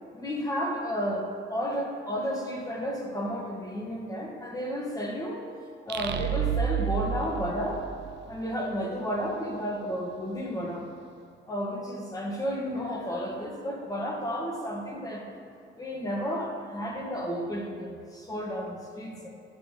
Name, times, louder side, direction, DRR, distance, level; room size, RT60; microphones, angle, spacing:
voice 1, 0.1-5.4 5.8-7.9 8.3-10.9 11.5-15.2 15.8-19.3, equal, 20° left, -1 dB, 1.7 m, -32 dB
sound 1, 5.9-8.5, right 10 dB, 60° right, 0.6 m, -30 dB
11.5 x 6.1 x 3.6 m, 2.5 s
cardioid pair, 90°, 20 cm